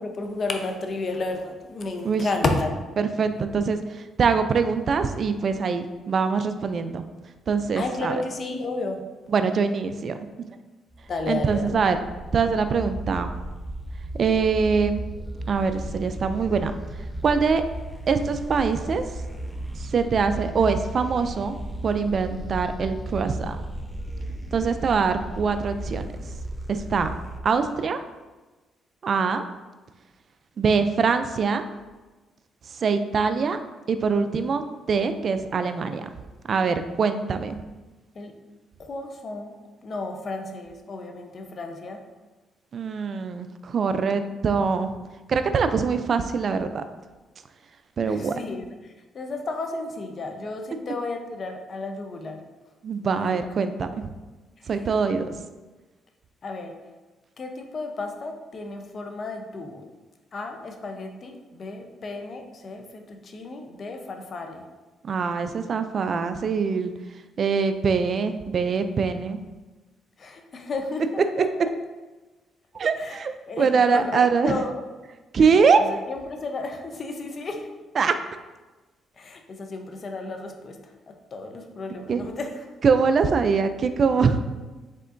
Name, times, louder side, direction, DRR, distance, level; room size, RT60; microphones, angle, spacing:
voice 1, 0.0-2.8 7.8-9.0 11.1-11.8 38.1-38.3 38.8-39.5 39.8-42.0 48.1-52.4 53.2-53.3 54.6-54.7 56.4-56.8 57.4-59.8 60.3-64.6 70.2-71.5 73.0-73.2 73.5-74.8 75.8-77.7 79.2-82.7, left 3 dB, 45° left, 4 dB, 0.6 m, -32 dB
voice 2, 3.0-7.0 7.5-8.2 9.3-10.2 11.3-12.0 12.3-13.3 14.2-15.0 15.5-16.7 17.2-17.6 18.1-19.0 19.8-21.6 21.8-23.6 24.5-26.3 26.7-27.1 27.4-28.0 29.0-29.4 30.6-31.6 32.7-33.6 33.9-36.1 36.5-37.6 42.7-44.9 45.3-46.8 48.0-48.3 52.8-53.9 54.7-55.4 65.0-66.9 67.4-69.4 72.7-74.6 75.3-75.8 78.0-78.2 82.1-82.2 82.8-84.4, right 5 dB, 50° right, 9 dB, 0.3 m, -23 dB
sound 1, 10.9-27.4, right 1 dB, 5° right, 0.5 m, -35 dB
5.4 x 3.7 x 2.5 m, 1.2 s
cardioid pair, 90°, 0 cm